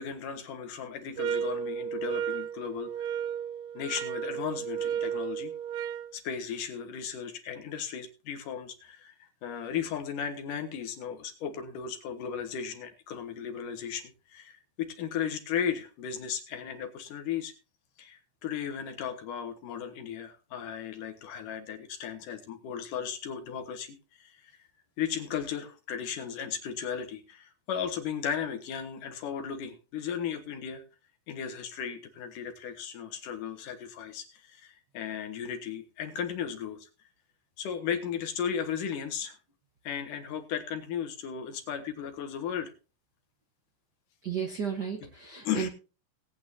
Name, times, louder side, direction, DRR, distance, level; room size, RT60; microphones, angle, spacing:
voice 1, 0.0-3.1 3.7-5.5 6.1-17.5 18.0-24.5 25.0-30.8 31.3-36.9 37.6-39.4 39.8-42.7 45.0-45.1 45.4-45.7, left 8 dB, 80° left, 6 dB, 3.1 m, -35 dB
sound 1, 1.2-6.1, right 8 dB, 75° right, 1.7 m, -33 dB
voice 2, 44.2-45.7, right 7 dB, 50° right, 2 dB, 1.2 m, -33 dB
19.0 x 8.8 x 2.8 m, 0.32 s
omnidirectional pair, 3.7 m